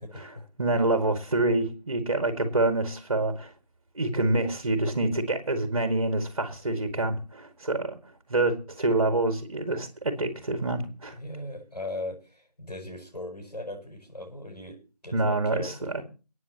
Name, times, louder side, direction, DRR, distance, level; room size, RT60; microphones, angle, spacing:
voice 1, 0.0-0.4 11.1-14.8 15.0-16.0, left 1 dB, 75° left, 2 dB, 7.6 m, -39 dB
voice 2, 0.6-3.5 4.0-8.0 8.3-11.2 15.1-16.0, right 2 dB, 45° right, 6 dB, 2.2 m, -26 dB
28.5 x 9.5 x 3.0 m, 0.35 s
figure-of-eight pair, 160°, 21 cm